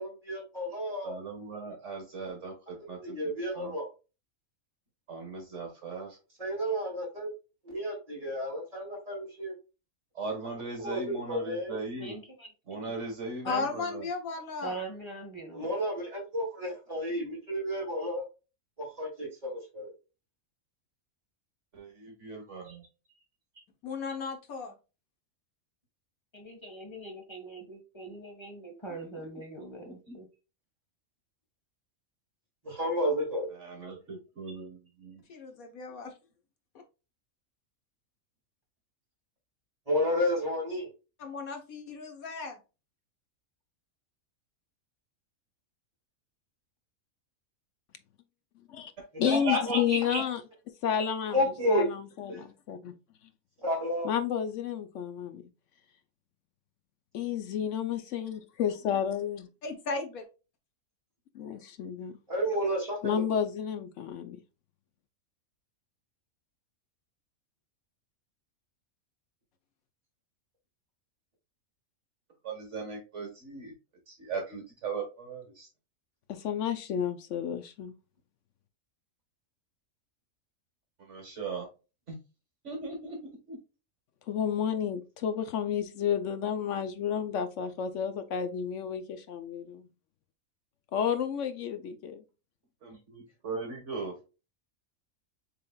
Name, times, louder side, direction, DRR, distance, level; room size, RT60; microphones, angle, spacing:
voice 1, 0.0-1.1 2.9-3.8 6.4-7.3 7.6-9.5 10.8-11.8 15.5-18.2 18.8-19.9 32.6-33.5 39.9-40.9 49.6-49.7 51.3-51.9 53.6-54.1 62.3-63.2, equal, 25° right, 2.6 m, -31 dB
voice 2, 1.0-3.2 3.5-3.8 5.1-6.2 10.2-12.2 12.7-14.1 21.7-22.9 30.1-30.2 33.5-35.2 49.2-50.2 72.4-73.7 74.1-75.7 81.1-81.7 82.1-82.2 82.6-83.2 83.5-83.6 92.8-94.2, right 2 dB, 60° right, 1.8 m, -37 dB
voice 3, 12.0-12.5 12.8-12.9 13.4-13.7 14.6-15.7 26.3-30.3, right 2 dB, 20° left, 1.5 m, -42 dB
voice 4, 13.4-14.8 23.8-24.8 35.3-36.1 41.2-42.6 59.6-60.3, left 4 dB, 90° left, 1.5 m, -35 dB
voice 5, 49.2-50.4 50.8-52.3 52.7-52.9 54.0-55.4 57.1-59.5 61.3-62.2 63.0-64.4 76.3-77.9 84.3-89.9 90.9-92.2, left 8 dB, 65° left, 1.0 m, -31 dB
6.8 x 3.4 x 2.3 m
omnidirectional pair, 1.4 m